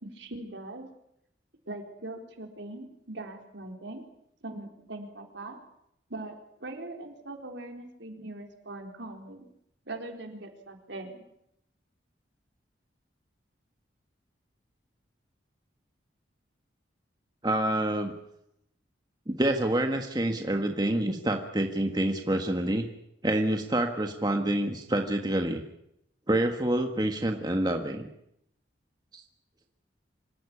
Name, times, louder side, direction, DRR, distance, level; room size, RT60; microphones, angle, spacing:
voice 1, 0.0-0.9 1.7-4.0 4.4-5.6 6.1-6.3 6.6-9.5 9.9-11.2, right 2 dB, 75° right, 3 dB, 4.3 m, -41 dB
voice 2, 17.4-18.1 19.3-22.9 23.2-25.6 26.3-28.1 29.1-29.2, right 1 dB, 20° right, 4 dB, 1.5 m, -27 dB
26.0 x 15.0 x 9.9 m, 0.78 s
head